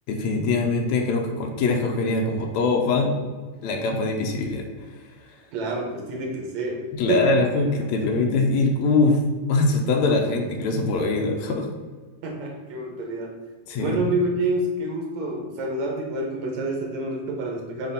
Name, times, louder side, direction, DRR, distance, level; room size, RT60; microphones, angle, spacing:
voice 1, 0.1-3.2 3.6-4.7 6.9-9.2 9.5-11.7 13.7-14.2, left 3 dB, 70° left, 2 dB, 1.8 m, -22 dB
voice 2, 5.5-6.8 7.1-7.4 12.2-13.4 13.8-17.9, right 1 dB, 65° right, 0 dB, 2.0 m, -28 dB
5.8 x 4.1 x 4.0 m, 1.4 s
omnidirectional pair, 3.9 m